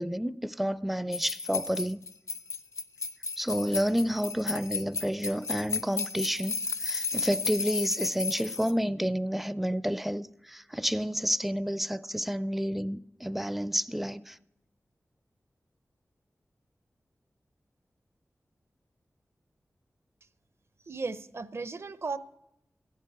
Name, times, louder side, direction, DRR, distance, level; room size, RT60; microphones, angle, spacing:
voice 1, 0.0-2.0 3.4-14.4, equal, 5° right, 0.4 m, -30 dB
sound 1, 1.1-8.7, left 4 dB, 65° left, 0.7 m, -33 dB
voice 2, 20.9-22.2, right 4 dB, 50° right, 0.6 m, -35 dB
14.0 x 7.5 x 9.3 m
wide cardioid pair, 90°, 6 cm